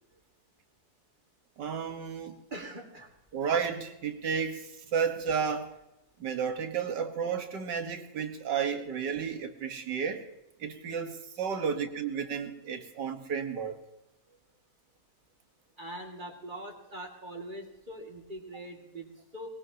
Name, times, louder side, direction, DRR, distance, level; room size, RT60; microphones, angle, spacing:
voice 1, 1.6-2.4 3.3-5.7 6.2-10.3 10.6-13.7, right 6 dB, 85° right, 7 dB, 2.0 m, -32 dB
voice 2, 2.5-3.1 15.8-19.5, right 1 dB, 30° right, 1 dB, 2.4 m, -42 dB
21.5 x 19.5 x 2.9 m, 0.93 s
omnidirectional pair, 1.8 m